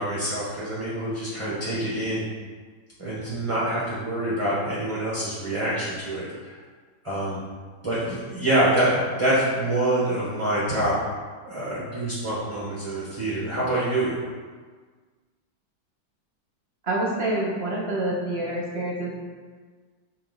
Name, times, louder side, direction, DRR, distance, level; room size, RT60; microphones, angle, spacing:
voice 1, 0.0-2.3 3.0-6.5 7.0-7.4 7.8-10.9 11.4-14.2, right 1 dB, 20° right, -8 dB, 0.8 m, -26 dB
voice 2, 16.8-19.1, right 1 dB, 40° right, -3 dB, 1.1 m, -27 dB
5.6 x 4.2 x 4.0 m, 1.5 s
omnidirectional pair, 2.2 m